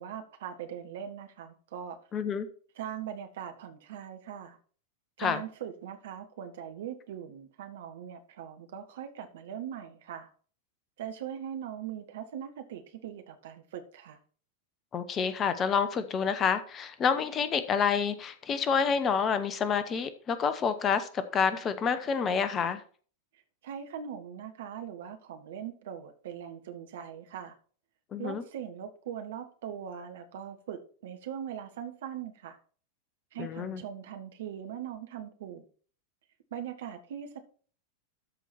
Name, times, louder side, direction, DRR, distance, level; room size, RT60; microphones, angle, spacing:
voice 1, 0.0-2.0 2.7-4.6 5.2-10.3 11.0-14.2 23.6-27.5 28.2-32.6 33.3-35.7 36.5-37.4, right 9 dB, 55° right, 1.5 m, -41 dB
voice 2, 2.1-2.5 5.2-5.4 14.9-22.8 28.1-28.4 33.4-33.8, left 6 dB, 25° left, 0.9 m, -28 dB
13.0 x 4.7 x 4.4 m
figure-of-eight pair, 90°, 0 cm